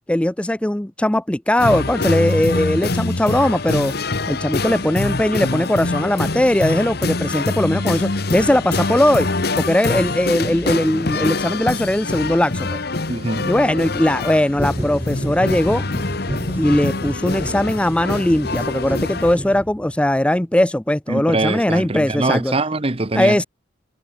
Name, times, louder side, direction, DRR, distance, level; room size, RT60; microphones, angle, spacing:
voice 1, 0.1-3.9 4.3-9.3 9.6-12.8 13.5-15.8 16.6-22.5 23.2-23.4, left 1 dB, 5° left, 0.4 m, -19 dB
sound 1, 1.6-19.3, left 3 dB, 55° left, 1.3 m, -25 dB
voice 2, 13.1-13.5 21.1-23.4, right 2 dB, 30° right, 1.0 m, -23 dB
sound 2, 14.5-20.1, equal, 10° right, 1.2 m, -30 dB
head